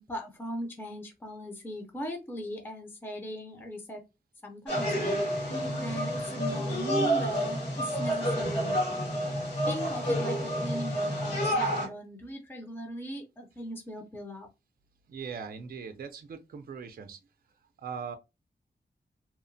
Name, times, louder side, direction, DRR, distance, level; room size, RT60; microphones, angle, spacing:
voice 1, 0.0-4.0 4.4-8.8 9.7-14.5, equal, 10° left, 0.5 m, -39 dB
sound 1, 4.7-11.9, equal, 85° left, 1.4 m, -29 dB
voice 2, 15.1-17.2 17.8-18.2, right 6 dB, 60° right, 0.4 m, -40 dB
2.8 x 2.0 x 2.6 m
wide cardioid pair, 115°, 17 cm